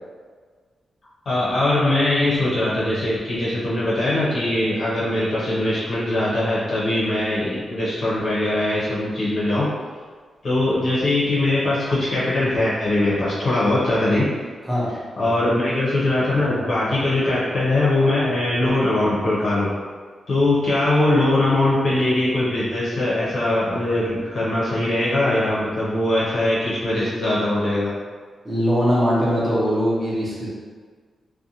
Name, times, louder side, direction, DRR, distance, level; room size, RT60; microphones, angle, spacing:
voice 1, 1.3-9.7 10.4-14.3 15.2-19.7 20.3-27.9, left 1 dB, 50° left, -8 dB, 0.7 m, -21 dB
voice 2, 28.4-30.5, equal, 5° right, -8 dB, 0.7 m, -21 dB
2.5 x 2.2 x 2.7 m, 1.5 s
wide cardioid pair, 170°, 0 cm